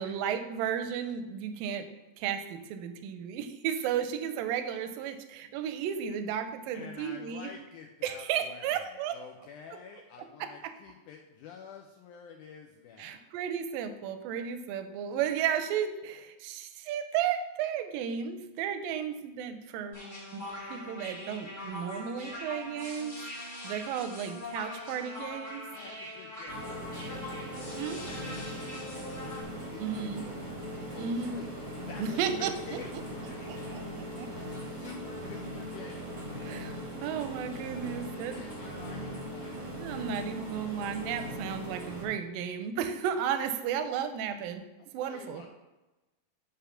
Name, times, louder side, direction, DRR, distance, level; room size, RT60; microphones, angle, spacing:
voice 1, 0.0-1.9 2.2-7.5 8.0-9.2 10.4-10.7 13.0-20.0 20.3-25.6 27.8-28.0 29.8-30.3 31.0-31.5 32.0-32.5 33.5-34.3 36.4-36.7 37.0-38.4 39.8-44.7 44.9-45.4, right 8 dB, 80° right, 9 dB, 2.2 m, -34 dB
voice 2, 6.7-13.2 25.7-27.3 28.0-31.5 31.8-33.6 34.3-36.5 37.8-39.5 44.8-45.5, left 6 dB, 90° left, 1 dB, 1.8 m, -49 dB
sound 1, 19.9-29.4, left 1 dB, 70° left, 0.4 m, -42 dB
sound 2, 26.5-42.0, equal, 40° right, 0.6 m, -40 dB
10.0 x 3.5 x 5.6 m, 1.1 s
omnidirectional pair, 4.3 m